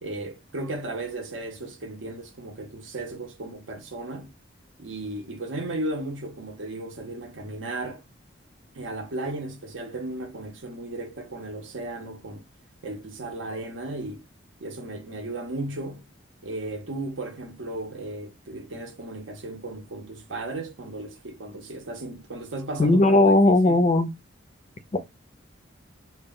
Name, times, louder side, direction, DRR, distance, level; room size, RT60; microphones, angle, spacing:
voice 1, 0.0-4.3 4.8-8.0 8.7-12.4 12.8-14.2 14.6-16.0 16.4-23.9, right 2 dB, 75° right, 0.7 m, -35 dB
voice 2, 22.8-24.1 24.9-25.0, left 2 dB, 35° left, 0.4 m, -18 dB
2.2 x 2.1 x 3.6 m
head